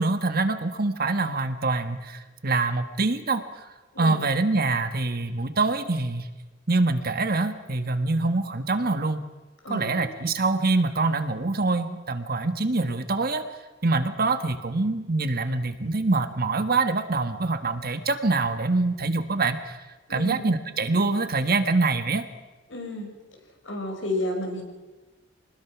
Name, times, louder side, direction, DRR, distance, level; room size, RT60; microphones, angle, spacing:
voice 1, 0.0-3.7 4.0-6.3 6.7-9.2 9.7-13.5 13.8-19.8 20.1-22.2, right 3 dB, 55° right, 8 dB, 1.5 m, -25 dB
voice 2, 9.6-10.1 20.1-20.4 22.7-23.1 23.6-24.6, left 1 dB, 80° left, 2 dB, 5.5 m, -31 dB
25.5 x 20.0 x 6.1 m, 1.2 s
head